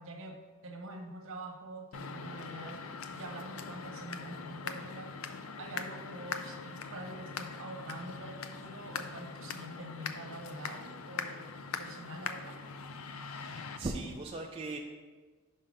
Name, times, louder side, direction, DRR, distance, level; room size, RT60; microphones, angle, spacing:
voice 1, 0.0-2.9 3.1-11.5 11.8-12.6, right 1 dB, 60° right, 3 dB, 0.9 m, -45 dB
sound 1, 1.9-13.8, left 5 dB, 65° left, 0.5 m, -42 dB
voice 2, 13.2-14.8, right 2 dB, 25° right, 0 dB, 0.4 m, -39 dB
5.6 x 5.5 x 5.1 m, 1.4 s
head